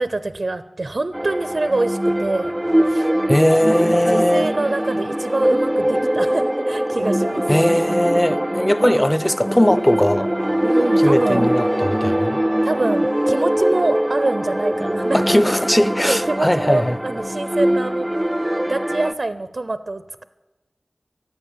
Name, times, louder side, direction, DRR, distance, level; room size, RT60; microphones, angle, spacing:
voice 1, 0.0-2.5 2.9-3.1 3.9-7.5 8.8-9.2 10.6-11.5 12.6-15.4 16.1-18.1 18.7-20.2, right 2 dB, 60° right, 12 dB, 0.6 m, -25 dB
sound 1, 1.1-19.1, right 1 dB, 15° right, 0.5 m, -22 dB
voice 2, 3.3-4.5 7.5-10.3 11.0-12.4 15.1-17.0, left 1 dB, 15° left, 14 dB, 0.8 m, -19 dB
14.5 x 9.8 x 8.6 m, 1.1 s
wide cardioid pair, 50°, 0 cm